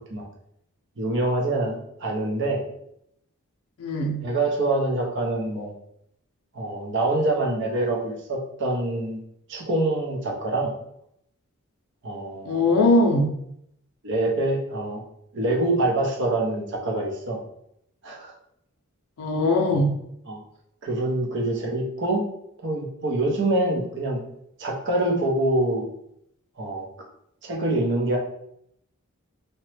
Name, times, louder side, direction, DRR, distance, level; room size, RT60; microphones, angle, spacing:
voice 1, 1.0-2.6 4.2-5.7 6.5-9.2 9.5-10.7 12.0-12.8 14.0-15.0 15.3-17.4 18.0-18.3 20.3-20.4 20.8-22.2 22.6-24.2 24.6-25.9 26.6-26.9 27.4-28.2, right 2 dB, 55° right, -1 dB, 0.6 m, -25 dB
voice 2, 3.8-4.2 12.5-13.3 19.2-19.9, left 2 dB, 75° left, 1 dB, 0.5 m, -20 dB
2.8 x 2.1 x 3.2 m, 0.74 s
head